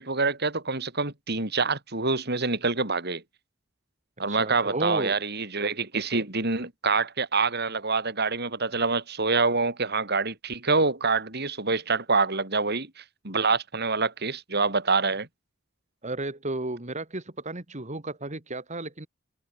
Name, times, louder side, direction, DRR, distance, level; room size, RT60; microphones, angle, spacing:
voice 1, 0.0-3.2 4.2-15.3, right 4 dB, 55° right, 4.8 m, -26 dB
voice 2, 4.3-5.2 16.0-19.1, right 2 dB, 35° right, 2.1 m, -33 dB
open air
head